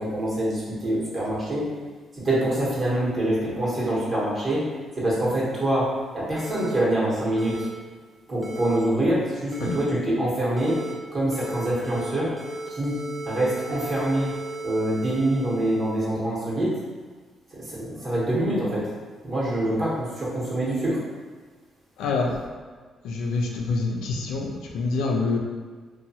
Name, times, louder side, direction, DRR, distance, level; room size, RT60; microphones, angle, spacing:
voice 1, 0.0-1.6 2.1-4.6 5.0-5.9 6.1-7.6 8.3-10.8 11.1-12.3 12.7-13.0 13.2-14.3 14.6-16.7 17.5-18.9 19.2-21.0, right 1 dB, 40° right, -6 dB, 1.1 m, -25 dB
sound 1, 6.4-6.7 7.4-7.7 8.4-8.8 9.5-9.8 10.6-10.9 11.3-12.1 12.4-16.1, right 1 dB, 10° right, 0.5 m, -36 dB
voice 2, 22.0-22.5 23.0-25.4, left 3 dB, 90° left, 0 dB, 0.4 m, -26 dB
2.8 x 2.2 x 2.7 m, 1.5 s
cardioid pair, 90°, 0 cm